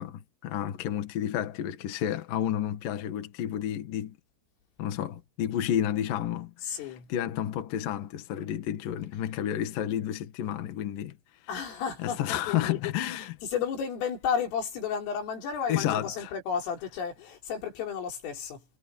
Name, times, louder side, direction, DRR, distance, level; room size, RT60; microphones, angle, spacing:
voice 1, 0.0-4.2 4.8-11.2 12.0-13.3 15.7-16.3, left 11 dB, 60° left, 2.6 m, -31 dB
voice 2, 6.6-7.1 11.5-18.6, left 7 dB, 75° left, 6.9 m, -33 dB
omnidirectional pair, 6.0 m